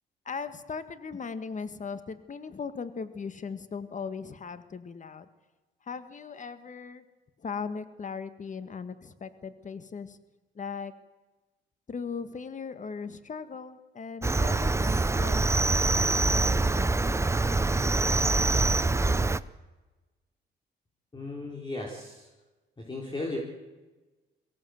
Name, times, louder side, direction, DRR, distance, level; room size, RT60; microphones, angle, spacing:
voice 1, 0.3-5.3 5.8-7.0 7.4-10.2 10.6-10.9 11.9-16.7, left 5 dB, 40° left, 11 dB, 1.8 m, -38 dB
Cricket, 14.2-19.4, right 2 dB, 15° right, 0.7 m, -25 dB
voice 2, 21.1-22.3 22.9-23.4, left 2 dB, 25° left, -2 dB, 4.4 m, -35 dB
23.0 x 17.5 x 8.0 m, 1.2 s
cardioid pair, 90°, 20 cm